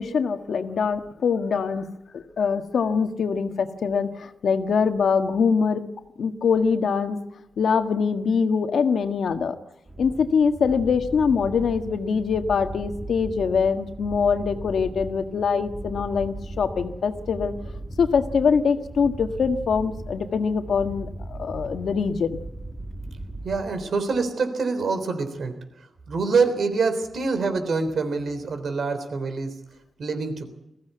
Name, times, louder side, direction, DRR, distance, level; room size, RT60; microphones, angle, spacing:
voice 1, 0.0-1.9 2.1-5.8 6.2-7.2 7.6-9.5 10.0-17.5 18.0-22.4, left 6 dB, 80° left, 7 dB, 1.6 m, -23 dB
sound 1, 9.9-24.1, right 1 dB, 10° right, 2.2 m, -38 dB
voice 2, 23.4-25.5 26.1-29.6 30.0-30.5, right 4 dB, 65° right, 9 dB, 3.6 m, -25 dB
21.5 x 15.5 x 9.4 m, 0.88 s
wide cardioid pair, 125°, 0 cm